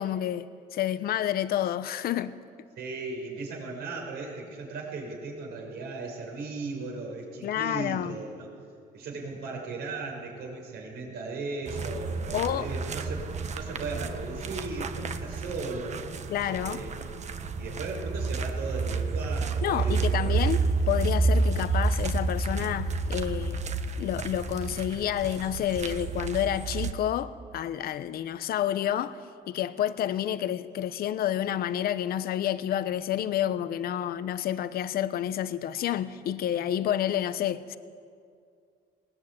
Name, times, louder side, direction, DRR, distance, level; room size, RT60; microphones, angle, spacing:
voice 1, 0.0-2.3 7.4-8.1 12.3-12.7 16.3-16.8 19.6-23.6 24.0-29.2 29.5-37.8, left 11 dB, 60° left, 1.0 m, -29 dB
voice 2, 2.7-8.5 8.9-13.3 13.5-16.1 16.4-17.3 17.5-20.5, right 3 dB, 75° right, 6.2 m, -37 dB
sound 1, 11.7-26.9, right 4 dB, 45° right, 1.4 m, -30 dB
20.0 x 19.5 x 9.0 m
cardioid pair, 110°, 17 cm